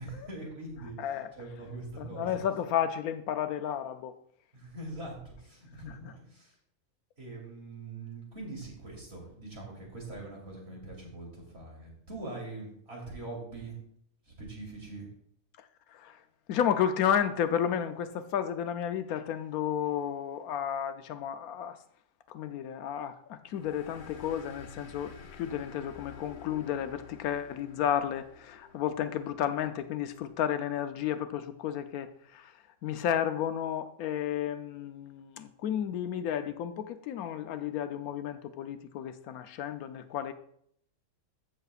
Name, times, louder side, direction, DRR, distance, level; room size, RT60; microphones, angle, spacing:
voice 1, 0.0-1.0 1.4-2.3 4.5-6.5 7.2-13.8 14.3-15.1, right 2 dB, 45° right, 3.1 m, -43 dB
voice 2, 1.0-1.3 2.0-4.1 5.8-6.1 15.6-16.2 16.5-21.8 22.3-40.3, left 9 dB, 90° left, 1.1 m, -32 dB
sound 1, 23.5-30.6, left 5 dB, 45° left, 0.7 m, -50 dB
14.5 x 6.6 x 2.4 m
omnidirectional pair, 1.5 m